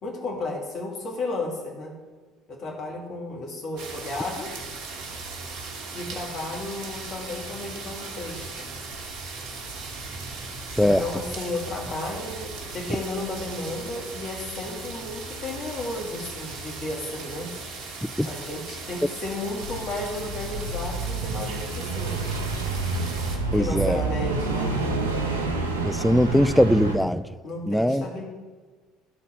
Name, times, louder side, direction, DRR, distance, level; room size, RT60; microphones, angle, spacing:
voice 1, 0.0-1.9 2.5-4.5 5.9-8.7 10.8-17.5 18.2-22.3 23.5-24.7 27.4-28.2, left 2 dB, 50° left, 0 dB, 2.2 m, -33 dB
sound 1, 3.8-23.4, right 3 dB, 60° right, 1.3 m, -38 dB
sound 2, 19.6-27.0, right 3 dB, 90° right, 0.8 m, -28 dB
voice 2, 23.5-24.0 25.8-27.3 27.7-28.0, equal, ahead, 13 dB, 0.4 m, -21 dB
12.0 x 4.1 x 6.2 m, 1.4 s
hypercardioid pair, 60°, 0 cm